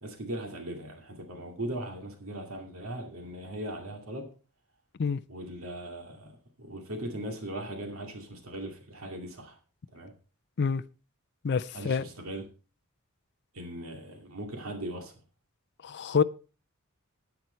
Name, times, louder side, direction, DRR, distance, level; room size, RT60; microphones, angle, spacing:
voice 1, 0.0-4.3 5.3-9.6 9.9-10.1 11.7-12.4 13.5-15.2, right 1 dB, 70° right, 2.4 m, -39 dB
voice 2, 11.4-12.0 15.8-16.2, left 5 dB, 50° left, 0.4 m, -27 dB
10.5 x 9.6 x 4.4 m
head